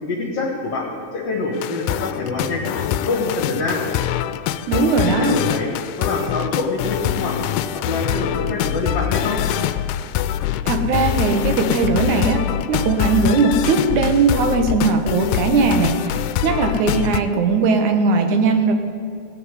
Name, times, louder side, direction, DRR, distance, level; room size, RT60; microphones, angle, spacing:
voice 1, 0.0-3.8 4.7-5.7 6.0-7.4 7.7-9.4, left 3 dB, 55° left, -3 dB, 2.6 m, -25 dB
sound 1, 1.5-17.2, left 11 dB, 85° left, 2.0 m, -24 dB
voice 2, 4.7-5.4 10.7-18.7, right 4 dB, 75° right, 6 dB, 2.5 m, -19 dB
17.5 x 6.1 x 9.6 m, 2.3 s
omnidirectional pair, 3.5 m